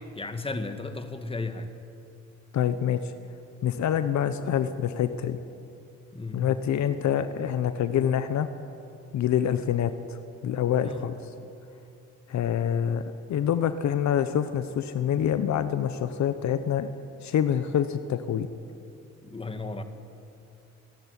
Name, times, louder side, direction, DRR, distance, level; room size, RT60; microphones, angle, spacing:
voice 1, 0.0-1.7 6.1-6.5 10.8-11.0 11.4-11.5 19.2-19.8, left 3 dB, 20° left, 8 dB, 1.8 m, -34 dB
voice 2, 2.5-3.0 3.6-5.4 6.3-8.5 9.1-10.2 10.4-11.2 12.3-16.9 17.2-18.5, left 9 dB, 65° left, 11 dB, 1.0 m, -26 dB
27.5 x 11.0 x 9.9 m, 2.6 s
cardioid pair, 90°, 30 cm